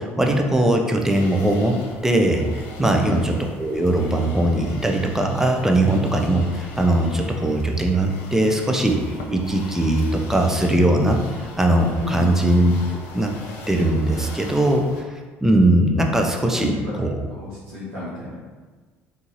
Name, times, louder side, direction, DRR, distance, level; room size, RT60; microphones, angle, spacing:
voice 1, 0.0-13.3 13.7-17.2, right 1 dB, 5° right, 2 dB, 0.5 m, -20 dB
sound 1, 1.1-15.0, left 2 dB, 65° left, 0.5 m, -39 dB
voice 2, 2.8-3.2 11.9-12.3 16.4-16.9 17.3-18.4, equal, 80° right, -10 dB, 1.2 m, -31 dB
3.8 x 2.6 x 2.9 m, 1.4 s
figure-of-eight pair, 55°, 7 cm